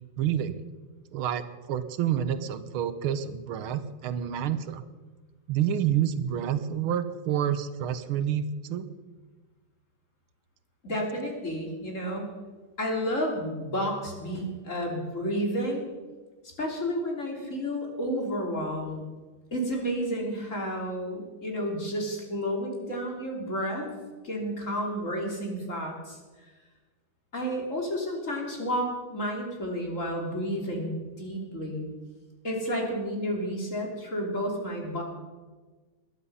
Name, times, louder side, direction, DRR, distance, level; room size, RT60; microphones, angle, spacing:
voice 1, 0.2-0.6 1.1-4.8 5.5-8.9, right 9 dB, 85° right, 12 dB, 1.8 m, -28 dB
voice 2, 10.8-12.4 12.8-15.9 16.4-19.0 19.5-23.9 24.2-26.2 27.3-31.8 32.4-35.0, equal, 35° left, 0 dB, 3.5 m, -31 dB
20.5 x 11.5 x 5.6 m, 1.3 s
omnidirectional pair, 2.3 m